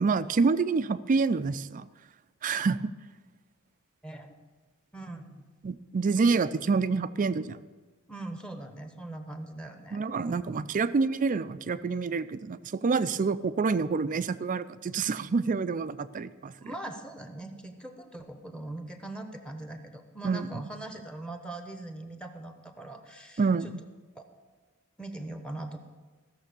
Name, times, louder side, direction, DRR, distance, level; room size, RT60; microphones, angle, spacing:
voice 1, 0.0-1.9 2.4-2.9 5.6-7.6 9.9-16.7 20.2-20.6 23.4-23.8, right 4 dB, 35° right, 14 dB, 0.4 m, -27 dB
voice 2, 4.0-4.3 4.9-5.5 8.1-10.0 10.3-10.4 16.6-23.7 24.2-24.3 25.0-25.8, right 2 dB, 5° left, 6 dB, 1.0 m, -41 dB
15.0 x 6.8 x 6.9 m, 1.3 s
head